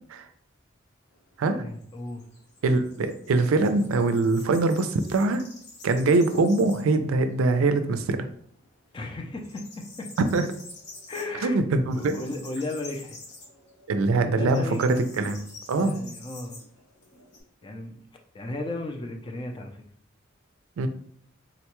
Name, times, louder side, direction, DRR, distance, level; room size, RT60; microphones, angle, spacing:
sound 1, 1.1-7.0 7.4-7.5 7.9-8.7 8.9-17.4, left 3 dB, 55° left, 0.9 m, -48 dB
voice 1, 1.5-2.2 8.9-10.1 11.1-11.6 11.9-13.2 14.3-15.0 15.7-16.6 17.6-18.0 18.3-19.8, left 2 dB, 25° left, 3 dB, 0.4 m, -35 dB
voice 2, 2.6-5.4 5.8-8.3 10.2-10.5 11.4-12.2 13.9-15.9 20.8-20.9, right 3 dB, 90° right, 9 dB, 0.4 m, -23 dB
3.8 x 2.2 x 2.9 m, 0.63 s
head